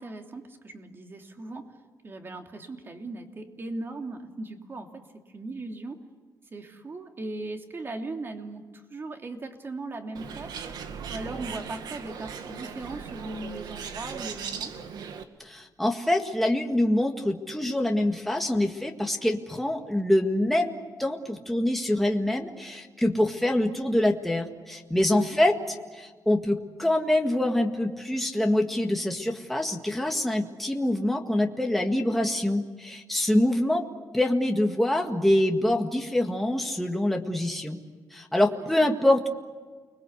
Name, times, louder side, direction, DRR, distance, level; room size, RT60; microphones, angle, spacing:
voice 1, 0.0-1.7 2.0-5.0 5.3-6.0 6.5-10.5 11.1-14.7 25.0-25.4 38.5-38.7, right 2 dB, 35° right, 4 dB, 3.0 m, -38 dB
Bird, 10.1-15.2, right 6 dB, 75° right, 2.1 m, -38 dB
voice 2, 15.4-33.8 34.1-37.8 38.1-39.3, left 1 dB, ahead, 2 dB, 1.8 m, -25 dB
30.0 x 22.0 x 8.3 m, 1.4 s
cardioid pair, 125°, 7 cm